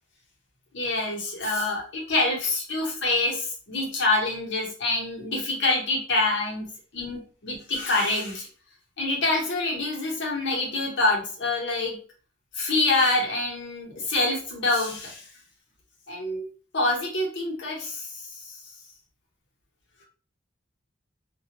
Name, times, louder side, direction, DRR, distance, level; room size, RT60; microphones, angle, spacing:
voice 1, 0.7-8.5 9.0-12.0 12.5-15.3 16.1-16.5 16.7-18.6, left 2 dB, 65° left, -2 dB, 0.9 m, -26 dB
2.3 x 2.1 x 2.8 m, 0.40 s
head